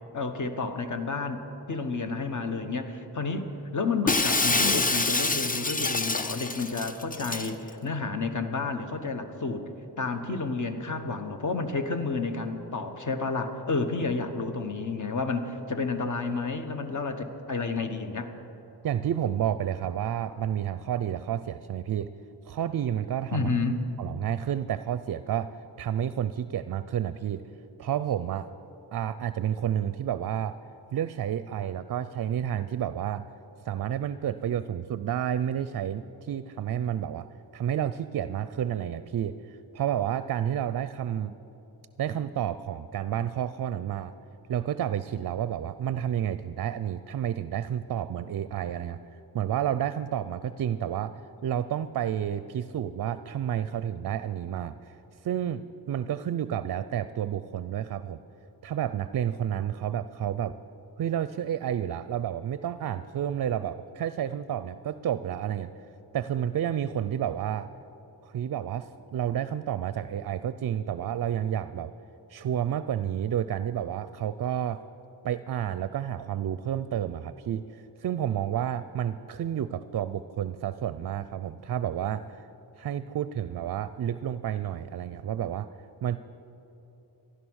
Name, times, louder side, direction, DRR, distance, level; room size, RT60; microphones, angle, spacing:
voice 1, 0.1-1.4 1.7-9.7 10.0-18.3 23.3-23.8, left 3 dB, 45° left, 7 dB, 1.3 m, -30 dB
Shatter, 4.1-7.5, left 3 dB, 20° left, 0.6 m, -26 dB
voice 2, 18.8-22.1 22.4-23.5 24.0-25.5 25.8-27.4 27.8-28.5 28.9-30.6 30.9-33.3 33.6-37.3 37.5-41.3 42.0-44.1 44.5-49.0 49.3-55.0 55.2-58.2 58.6-60.6 61.0-65.7 66.1-67.7 68.2-71.9 72.3-74.8 75.2-82.5 82.8-85.7 86.0-86.2, right 10 dB, 55° right, 14 dB, 0.5 m, -30 dB
14.5 x 11.5 x 6.3 m, 3.0 s
cardioid pair, 75°, 41 cm